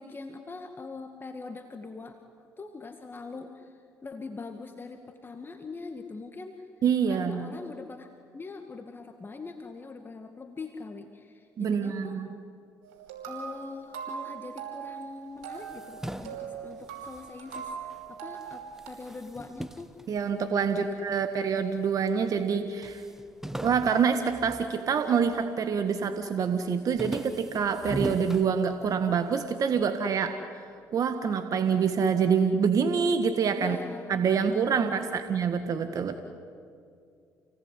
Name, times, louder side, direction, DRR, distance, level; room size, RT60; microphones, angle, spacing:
voice 1, 0.0-2.2 2.6-6.7 7.1-12.2 13.3-19.9 20.8-21.2 33.5-35.0, left 3 dB, 30° left, 5 dB, 2.0 m, -43 dB
voice 2, 6.8-7.5 11.6-12.3 20.1-23.0 23.6-30.4 30.9-33.8 34.1-36.2, right 6 dB, 55° right, 8 dB, 1.7 m, -26 dB
sound 1, 12.8-18.9, right 7 dB, 85° right, 5.5 m, -40 dB
sound 2, 15.4-18.1 18.4-20.9 21.5-22.2 22.5-22.6 22.8-25.4 25.8-26.2 26.6-29.2, right 1 dB, 5° right, 1.4 m, -40 dB
29.0 x 19.0 x 9.9 m, 2.3 s
supercardioid pair, 65°, 7 cm